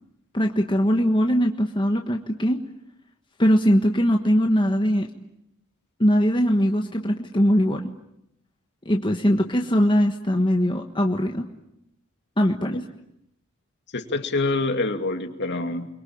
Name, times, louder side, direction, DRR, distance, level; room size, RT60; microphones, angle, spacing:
voice 1, 0.3-2.6 3.4-5.1 6.0-7.9 8.8-11.5 12.4-12.9, equal, 25° left, 3 dB, 1.4 m, -21 dB
voice 2, 13.9-15.9, left 2 dB, 55° left, 5 dB, 2.5 m, -26 dB
29.5 x 23.0 x 8.8 m, 0.81 s
head